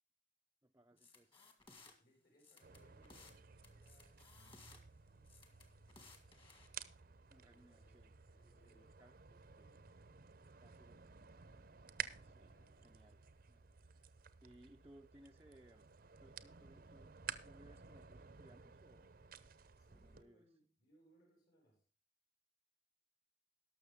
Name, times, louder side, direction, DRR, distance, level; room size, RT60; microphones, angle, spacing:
voice 1, 0.6-1.5 7.3-8.1 8.6-9.2 10.6-11.3 12.2-13.2 13.5-14.1 14.4-15.9 16.2-17.1 17.4-19.1 19.9-20.5, right 1 dB, 15° right, 2 dB, 0.5 m, -65 dB
sound 1, 1.0-1.9 2.4-3.4 3.6-4.8 5.2-6.7, left 3 dB, 30° left, 2.0 m, -61 dB
voice 2, 2.0-5.5 7.3-9.9 12.1-13.0 19.8-21.8, equal, 60° left, 0 dB, 5.9 m, -73 dB
sound 2, 2.6-20.2, right 8 dB, 55° right, 0.7 m, -54 dB
18.5 x 6.5 x 3.6 m, 0.38 s
head